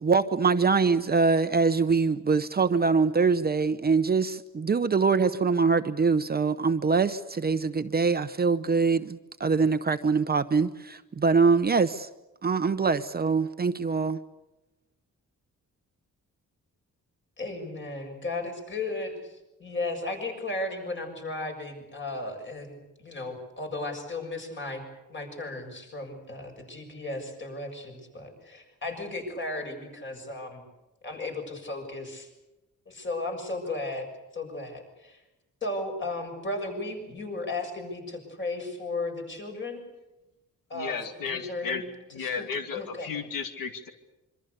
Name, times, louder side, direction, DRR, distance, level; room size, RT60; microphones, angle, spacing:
voice 1, 0.0-12.1 12.4-14.2, right 4 dB, 30° right, 0.8 m, -24 dB
voice 2, 17.4-24.8 25.1-30.6 31.0-32.3 32.9-34.1 34.3-35.2 35.6-39.8 40.7-40.9 41.3-41.8 42.2-42.5 42.7-43.1, left 2 dB, 35° left, 6.8 m, -35 dB
voice 3, 40.7-41.8 42.1-43.9, left 6 dB, 90° left, 2.6 m, -34 dB
26.5 x 25.0 x 6.8 m
wide cardioid pair, 165°, 33 cm